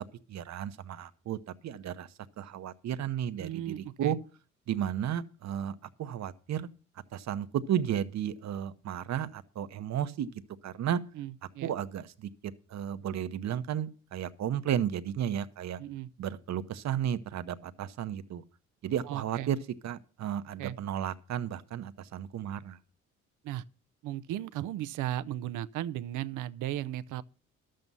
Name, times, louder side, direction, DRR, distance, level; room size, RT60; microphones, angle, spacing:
voice 1, 0.3-1.4 1.6-2.1 2.4-4.2 4.7-6.7 7.1-10.3 10.6-11.0 11.6-12.3 12.7-15.8 16.2-18.4 18.8-19.6 19.8-22.8, right 10 dB, 65° right, 0.9 m, -33 dB
voice 2, 3.4-4.2 11.1-11.7 15.8-16.1 19.1-19.5 20.6-20.8 23.4-23.6 24.0-27.2, right 13 dB, 80° right, 0.6 m, -36 dB
12.0 x 7.7 x 5.5 m
cardioid pair, 90°, 30 cm